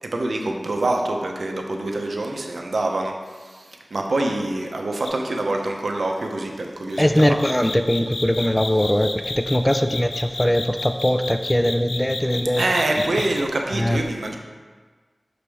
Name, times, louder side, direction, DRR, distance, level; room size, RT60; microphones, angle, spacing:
voice 1, 0.0-7.4 12.6-14.4, right 2 dB, 85° right, 2 dB, 0.7 m, -25 dB
sound 1, 5.0-5.3 6.9-13.4, left 2 dB, 85° left, 0.5 m, -31 dB
voice 2, 7.0-12.6 13.7-14.0, equal, 10° left, 7 dB, 0.3 m, -21 dB
6.1 x 4.9 x 3.4 m, 1.5 s
wide cardioid pair, 75°, 0 cm